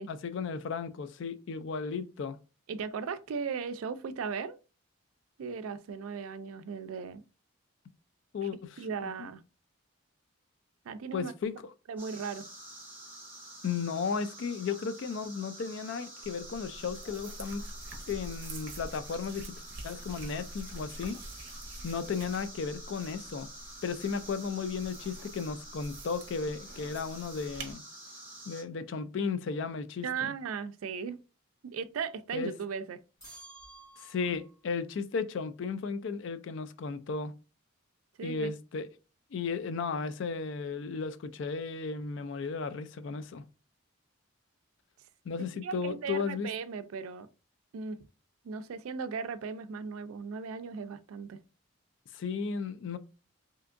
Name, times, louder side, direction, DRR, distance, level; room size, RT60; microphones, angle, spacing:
voice 1, 0.1-2.4 8.3-9.3 11.1-11.5 13.6-17.7 18.1-19.6 19.8-21.2 21.8-23.5 23.8-27.8 28.5-30.3 32.3-32.5 34.0-37.3 38.2-38.9 39.3-43.4 45.3-46.5 52.1-53.0, left 5 dB, 60° left, 0.3 m, -35 dB
voice 2, 2.7-4.6 5.4-7.2 8.4-8.5 8.8-9.4 10.8-11.3 11.9-12.5 30.0-31.2 31.6-33.0 38.2-38.5 45.6-47.3 47.7-48.0 48.4-51.4, right 5 dB, 80° right, 0.4 m, -37 dB
sound 1, 12.0-28.6, right 1 dB, 10° right, 1.3 m, -48 dB
sound 2, 16.2-27.7, right 2 dB, 50° right, 0.7 m, -46 dB
sound 3, 33.2-34.6, right 2 dB, 15° left, 1.3 m, -51 dB
3.4 x 2.8 x 2.5 m
head